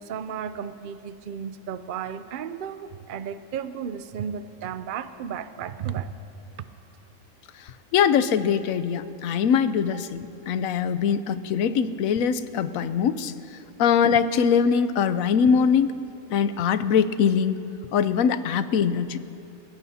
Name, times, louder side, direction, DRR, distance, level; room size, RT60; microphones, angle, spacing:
voice 1, 0.0-6.1 9.9-10.0, right 8 dB, 65° right, 11 dB, 0.5 m, -34 dB
voice 2, 7.9-13.3 13.8-16.0 16.3-17.6 17.9-19.2, left 7 dB, 80° left, 12 dB, 1.1 m, -22 dB
30.0 x 16.5 x 2.8 m, 2.7 s
omnidirectional pair, 1.4 m